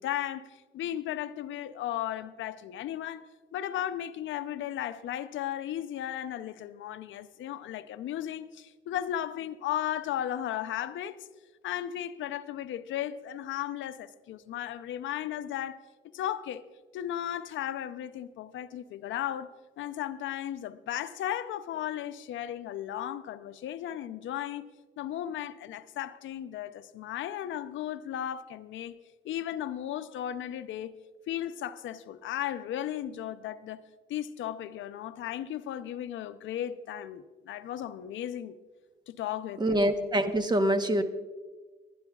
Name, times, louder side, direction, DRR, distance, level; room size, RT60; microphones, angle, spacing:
voice 1, 0.0-11.2 11.6-15.8 16.1-16.6 16.9-24.7 25.0-28.9 29.2-30.9 31.3-33.8 34.1-38.6 39.1-39.8, left 11 dB, 75° left, 0.5 m, -35 dB
voice 2, 39.6-41.0, right 1 dB, 20° right, 1.0 m, -25 dB
20.5 x 11.5 x 2.3 m
cardioid pair, 90°, 20 cm